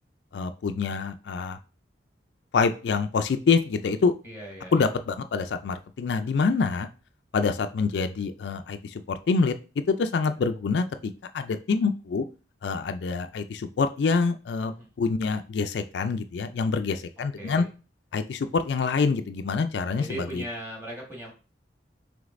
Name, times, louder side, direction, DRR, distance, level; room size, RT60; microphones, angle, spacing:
voice 1, 0.3-1.6 2.5-4.1 4.7-6.9 7.3-9.5 9.9-12.3 12.6-14.7 15.0-17.7 18.1-20.4, left 4 dB, 70° left, 8 dB, 0.4 m, -26 dB
voice 2, 4.2-4.8 14.6-14.9 17.4-17.7 19.9-21.3, right 1 dB, 10° right, -3 dB, 1.4 m, -38 dB
5.0 x 3.4 x 2.5 m, 0.34 s
head